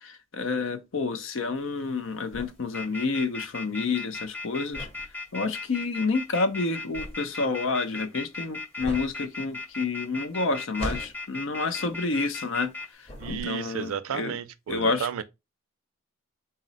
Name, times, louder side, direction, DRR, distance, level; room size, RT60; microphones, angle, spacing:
voice 1, 0.0-4.9 5.3-12.7 13.0-14.4 14.7-15.1, left 3 dB, 70° left, 0.5 m, -29 dB
sound 1, 1.6-12.8 13.0-13.9, equal, 30° left, 0.8 m, -41 dB
sound 2, 2.7-12.9, left 3 dB, 10° left, 0.3 m, -36 dB
voice 2, 13.2-15.2, right 8 dB, 80° right, 0.4 m, -33 dB
3.8 x 2.0 x 3.9 m
head